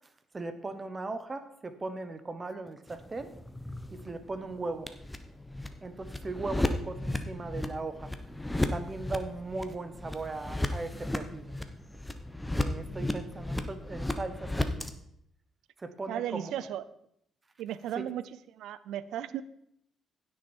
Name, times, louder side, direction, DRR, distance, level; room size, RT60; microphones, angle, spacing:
voice 1, 0.3-3.3 3.9-4.9 5.8-8.1 8.7-11.5 12.5-14.9 15.8-16.5, right 3 dB, 25° right, 10 dB, 1.0 m, -38 dB
sound 1, 2.9-14.9, left 1 dB, 10° left, 0.9 m, -35 dB
voice 2, 16.1-16.8 17.6-18.2 18.5-19.4, right 11 dB, 85° right, 16 dB, 0.5 m, -35 dB
15.5 x 6.5 x 4.5 m, 0.72 s
cardioid pair, 90°, 0 cm